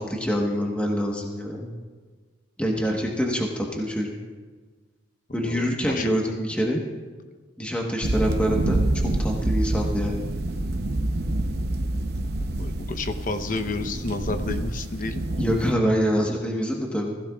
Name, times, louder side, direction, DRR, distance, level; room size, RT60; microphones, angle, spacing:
voice 1, 0.0-1.7 2.6-4.2 5.3-6.8 7.6-8.9 9.2-10.3 15.4-17.2, equal, 5° left, -1 dB, 1.2 m, -25 dB
voice 2, 5.4-6.1 12.6-15.3, left 3 dB, 40° left, 7 dB, 0.8 m, -30 dB
sound 1, 8.0-15.7, right 1 dB, 55° right, 0.8 m, -27 dB
20.5 x 15.5 x 2.4 m, 1.4 s
head